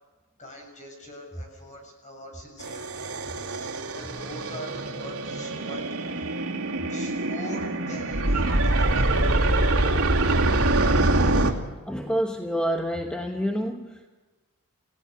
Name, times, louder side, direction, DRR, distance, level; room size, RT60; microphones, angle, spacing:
voice 1, 0.4-3.0 3.5-6.2 6.9-9.5, equal, 35° left, 2 dB, 7.1 m, -43 dB
sound 1, 2.6-11.5, right 2 dB, 85° right, 2.4 m, -24 dB
voice 2, 11.9-14.1, equal, 5° left, 3 dB, 1.1 m, -28 dB
29.0 x 16.5 x 6.8 m, 1.3 s
head